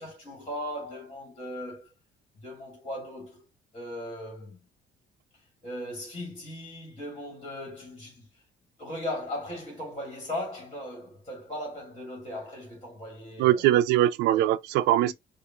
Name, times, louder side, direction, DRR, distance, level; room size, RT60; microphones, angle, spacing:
voice 1, 0.0-1.9 2.4-3.4 3.7-4.6 5.6-8.3 8.8-13.7 14.2-14.4 15.0-15.1, left 1 dB, 30° left, 2.4 m, -38 dB
voice 2, 13.4-15.1, right 13 dB, 90° right, 0.5 m, -22 dB
4.8 x 2.5 x 2.8 m
cardioid pair, 110°, 17 cm